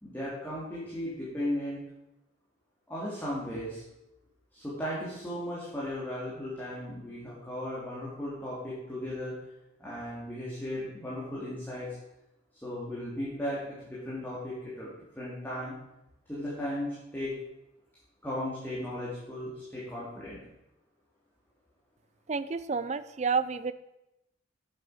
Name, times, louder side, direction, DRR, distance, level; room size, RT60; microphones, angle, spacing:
voice 1, 0.0-1.8 2.9-3.8 4.5-9.3 9.8-11.9 12.6-15.7 16.3-17.3 18.2-20.4, left 1 dB, 10° left, -8 dB, 2.7 m, -36 dB
voice 2, 22.3-23.7, right 5 dB, 35° right, 13 dB, 0.5 m, -30 dB
10.0 x 7.9 x 5.0 m, 0.89 s
head